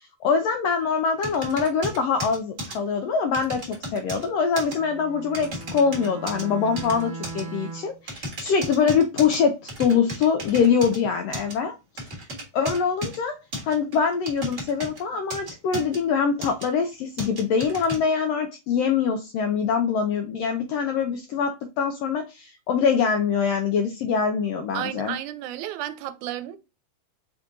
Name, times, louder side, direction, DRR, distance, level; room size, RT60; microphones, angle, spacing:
voice 1, 0.0-12.3 12.5-13.4 13.6-25.1, left 6 dB, 80° left, 1.4 m, -24 dB
sound 1, 1.2-2.8 3.3-4.3 4.6-4.8 5.3-6.4 6.8-7.4 8.1-9.4 9.7-11.0 11.3-11.5 12.0-13.2 13.5-15.0 15.3-16.0 16.4-16.7 17.2-18.0, right 1 dB, 35° right, 1.2 m, -34 dB
Bowed string instrument, 4.6-8.0, right 4 dB, 55° right, 0.9 m, -38 dB
voice 2, 24.7-26.6, right 12 dB, 85° right, 1.9 m, -32 dB
5.2 x 3.5 x 2.5 m
omnidirectional pair, 3.4 m